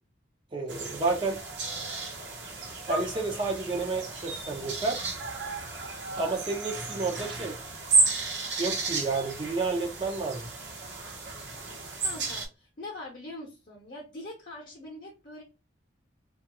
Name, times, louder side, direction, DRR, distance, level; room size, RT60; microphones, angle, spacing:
voice 1, 0.5-1.4 2.9-5.0 6.2-7.6 8.6-10.5, right 3 dB, 25° right, 0.5 m, -30 dB
sound 1, 0.7-12.5, right 3 dB, 75° right, 0.9 m, -32 dB
voice 2, 12.0-15.4, left 2 dB, 45° left, 0.7 m, -43 dB
3.0 x 2.3 x 2.9 m
head